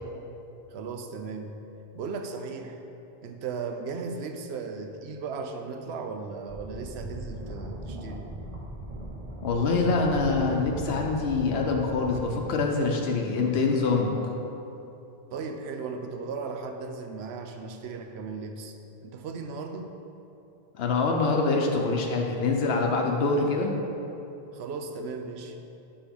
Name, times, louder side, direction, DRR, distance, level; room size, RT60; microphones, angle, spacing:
voice 1, 0.7-1.6 1.9-2.8 3.2-8.3 15.3-18.8 19.0-19.9 24.5-25.6, right 4 dB, 85° right, 5 dB, 0.9 m, -36 dB
sound 1, 6.5-12.3, right 1 dB, 35° right, 1.0 m, -38 dB
voice 2, 9.4-14.3 20.7-23.7, left 3 dB, 80° left, 1 dB, 0.9 m, -25 dB
5.4 x 5.0 x 5.1 m, 2.9 s
omnidirectional pair, 1.0 m